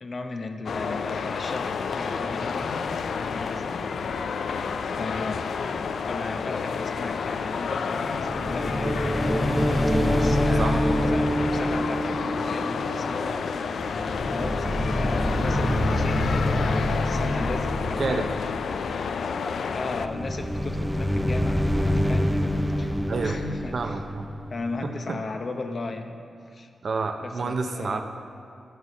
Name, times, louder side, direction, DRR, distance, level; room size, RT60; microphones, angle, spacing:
voice 1, 0.0-3.8 5.0-9.0 10.0-13.7 14.3-18.6 19.7-22.3 22.8-24.0 24.5-26.1 26.5-26.7 27.2-28.0, left 3 dB, 50° left, 6 dB, 0.8 m, -36 dB
sound 1, 0.7-20.1, left 5 dB, 75° left, 0.4 m, -30 dB
sound 2, 8.1-13.5 13.7-19.0 19.9-24.8, equal, ahead, 0.6 m, -26 dB
voice 2, 18.0-18.3 23.1-23.4 23.7-24.3 24.8-25.2 26.8-28.0, right 4 dB, 55° right, 6 dB, 0.7 m, -29 dB
9.4 x 6.7 x 6.5 m, 2.5 s
cardioid pair, 80°, 0 cm